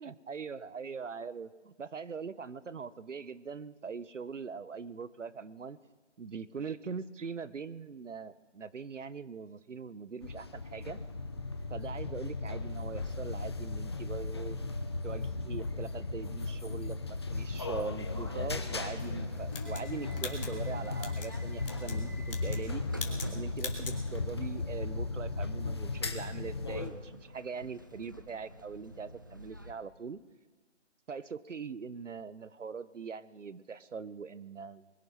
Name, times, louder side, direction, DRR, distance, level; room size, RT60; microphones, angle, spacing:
voice 1, 0.0-5.8 6.2-11.0 11.7-14.6 15.0-22.8 23.3-30.2 31.1-34.9, right 5 dB, 85° right, 17 dB, 1.0 m, -42 dB
sound 1, 10.2-26.9, left 3 dB, 20° left, 0.6 m, -36 dB
sound 2, 18.0-29.7, equal, 20° right, 0.5 m, -47 dB
sound 3, 19.5-21.3 21.6-22.0 22.3-22.7 22.9-23.3 23.6-24.0, left 5 dB, 50° left, 2.6 m, -42 dB
21.0 x 11.0 x 5.7 m, 1.4 s
figure-of-eight pair, 160°, 36 cm